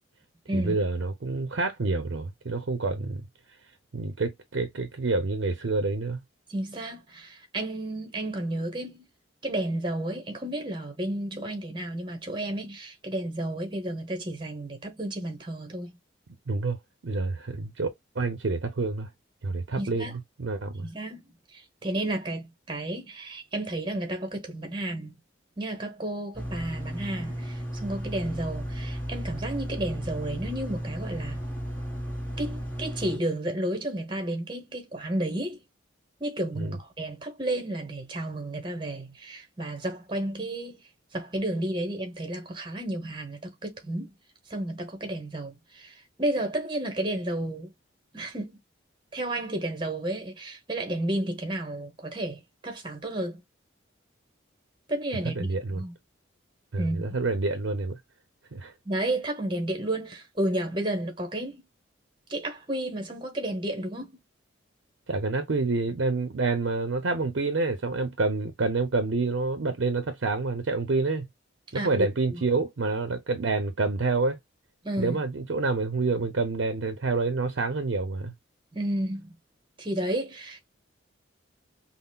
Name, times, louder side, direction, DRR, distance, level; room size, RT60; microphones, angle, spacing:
voice 1, 0.5-3.2 3.9-6.2 16.5-17.9 18.1-19.1 19.4-20.9 36.6-36.8 55.2-55.8 56.7-58.0 58.5-58.7 65.1-71.3 71.7-74.4 75.0-78.3, right 3 dB, 70° right, 0.6 m, -28 dB
voice 2, 6.5-9.1 9.4-16.0 19.8-20.2 20.8-25.2 25.6-31.4 32.4-35.6 36.2-40.8 41.1-44.2 44.5-47.7 48.1-48.6 49.1-53.4 54.9-55.5 55.8-55.9 56.8-57.0 58.8-61.7 62.3-64.2 71.7-72.1 72.3-72.4 74.8-75.2 78.7-79.4 79.8-80.6, right 1 dB, 25° right, 0.9 m, -32 dB
sound 1, 26.3-33.2, equal, 10° left, 1.3 m, -34 dB
5.5 x 2.0 x 2.2 m
head